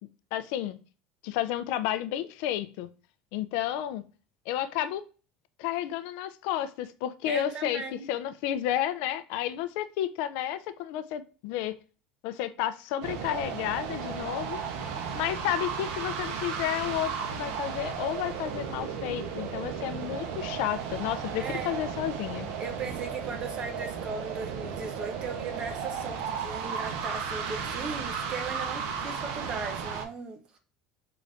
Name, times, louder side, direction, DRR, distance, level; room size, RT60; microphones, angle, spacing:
voice 1, 0.3-0.8 1.2-2.9 3.3-4.0 4.5-5.1 5.6-7.8 8.1-11.7 12.2-14.6 15.1-22.5, left 11 dB, 70° left, 0.4 m, -31 dB
voice 2, 7.2-8.0 21.4-21.8 22.6-30.6, right 4 dB, 25° right, 0.6 m, -37 dB
sound 1, 13.0-30.0, right 6 dB, 80° right, 0.7 m, -34 dB
3.9 x 2.5 x 3.2 m
cardioid pair, 180°, 3 cm